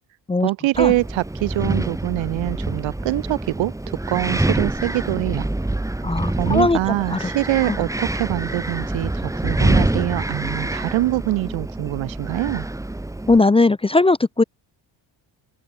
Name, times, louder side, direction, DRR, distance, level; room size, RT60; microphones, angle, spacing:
voice 1, 0.4-3.7 4.1-5.5 6.3-12.7, right 17 dB, 80° right, 0.9 m, -24 dB
Wind, 0.7-13.4, right 1 dB, 5° right, 1.5 m, -26 dB
voice 2, 6.0-6.8 7.1-7.3 13.3-14.4, left 3 dB, 15° left, 0.5 m, -18 dB
open air
cardioid pair, 125°, 46 cm